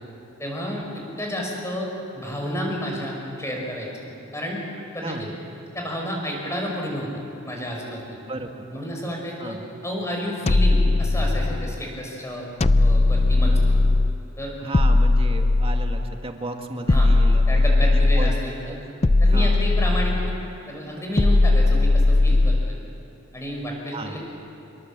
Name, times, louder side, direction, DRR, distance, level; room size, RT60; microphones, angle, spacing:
voice 1, 0.4-4.6 4.9-5.3 5.7-7.1 7.4-8.2 8.7-9.6 9.8-12.5 12.8-13.8 14.4-14.5 16.9-17.1 17.5-18.8 19.2-20.4 20.7-22.8 23.3-24.2, equal, 15° left, -1 dB, 5.6 m, -31 dB
voice 2, 8.3-8.7 9.4-9.7 13.4-13.6 14.6-18.4 18.7-18.8 19.3-19.6 23.9-24.2, right 2 dB, 25° right, 3 dB, 2.0 m, -34 dB
sound 1, 10.5-11.8 12.6-14.2 14.7-16.2 16.9-18.5 19.0-20.4 21.2-22.8, left 2 dB, 30° left, 0.5 m, -18 dB
27.5 x 22.5 x 7.5 m, 3.0 s
head